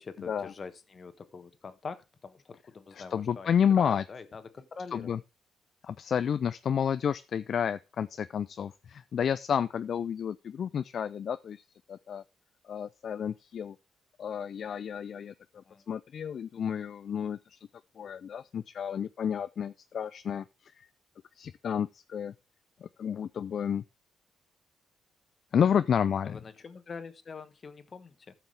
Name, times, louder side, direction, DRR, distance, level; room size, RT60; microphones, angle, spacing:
voice 1, 0.0-3.5 3.8-5.2 15.5-15.8 26.2-28.3, left 5 dB, 45° left, 1.2 m, -44 dB
voice 2, 2.9-4.0 4.9-5.2 5.8-11.6 11.9-12.2 12.7-13.8 14.2-15.3 15.9-17.6 18.0-20.9 21.4-22.3 22.8-23.8 25.5-26.4, left 8 dB, 60° left, 0.4 m, -30 dB
14.5 x 5.9 x 3.3 m
supercardioid pair, 60°, 0 cm